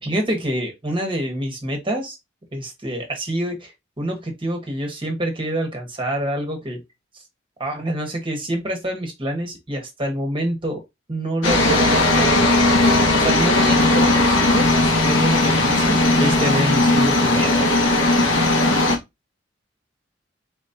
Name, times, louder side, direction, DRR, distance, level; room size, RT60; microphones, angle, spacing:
voice 1, 0.0-2.2 2.5-3.7 4.0-6.8 7.6-10.8 11.1-12.3 13.1-14.7 15.0-17.6, right 1 dB, 25° right, 1.4 m, -26 dB
sound 1, 11.4-19.0, left 2 dB, 75° left, 1.5 m, -17 dB
4.4 x 4.1 x 2.8 m
head